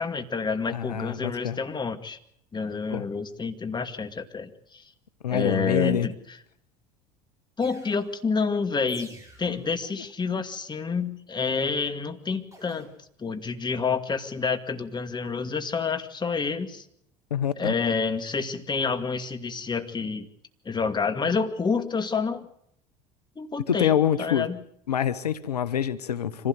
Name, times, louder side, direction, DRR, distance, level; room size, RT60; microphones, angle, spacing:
voice 1, 0.0-2.2 2.5-4.8 5.3-6.1 7.6-9.1 9.4-12.9 13.2-16.8 17.6-20.3 20.6-22.5 23.4-24.6, left 5 dB, 20° left, 7 dB, 2.4 m, -28 dB
voice 2, 0.7-1.6 2.9-3.1 5.2-6.1 17.3-17.7 23.7-24.5 24.9-26.5, left 9 dB, 90° left, 15 dB, 0.8 m, -26 dB
sound 1, 7.6-8.2 8.9-9.7 12.5-12.9, right 1 dB, 15° right, 7.3 m, -49 dB
25.5 x 16.5 x 8.1 m, 0.73 s
hypercardioid pair, 75°, 20 cm